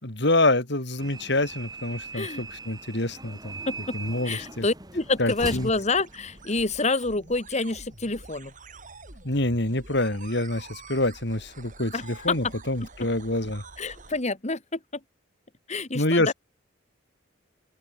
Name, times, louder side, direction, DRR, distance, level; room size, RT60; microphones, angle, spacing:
voice 1, 0.0-3.5 3.9-4.6 5.2-5.7 9.2-13.6 15.9-16.3, left 2 dB, 60° left, 4.5 m, -26 dB
sound 1, 1.0-6.8, right 3 dB, 20° right, 6.4 m, -41 dB
voice 2, 2.1-2.4 3.7-4.0 4.2-8.5 11.9-12.5 13.8-15.0 15.7-16.3, left 3 dB, 35° left, 2.0 m, -28 dB
sound 2, 4.5-14.2, right 3 dB, 40° right, 6.7 m, -47 dB
open air
head